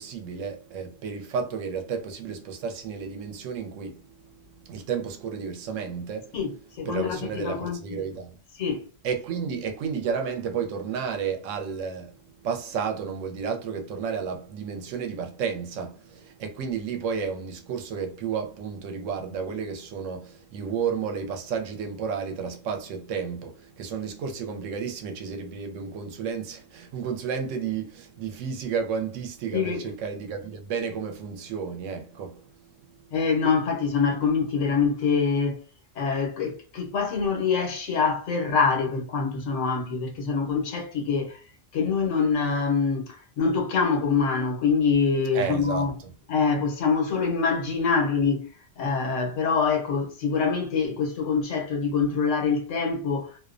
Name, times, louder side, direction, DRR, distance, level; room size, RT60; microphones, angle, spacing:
voice 1, 0.0-4.0 4.7-6.3 6.9-8.3 9.0-12.2 12.4-32.4 45.3-45.9, right 6 dB, 80° right, 0.9 m, -32 dB
voice 2, 6.3-8.0 8.6-8.9 29.5-29.9 33.1-35.6 35.9-41.4 41.7-46.0 46.3-48.5 48.8-53.3, left 5 dB, 80° left, 1.1 m, -25 dB
2.5 x 2.0 x 2.4 m
omnidirectional pair, 1.3 m